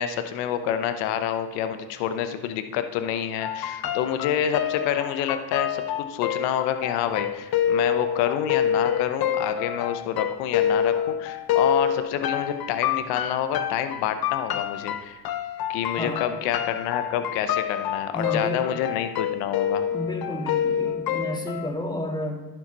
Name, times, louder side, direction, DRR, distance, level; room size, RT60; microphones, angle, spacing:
voice 1, 0.0-15.2 15.7-19.9, left 9 dB, 85° left, 9 dB, 0.8 m, -28 dB
sound 1, 3.4-21.7, left 9 dB, 50° left, 0.7 m, -27 dB
voice 2, 16.0-16.3 18.1-18.8 19.9-22.5, left 1 dB, 10° left, 0 dB, 1.8 m, -31 dB
10.5 x 5.9 x 4.0 m, 1.1 s
hypercardioid pair, 55°, 46 cm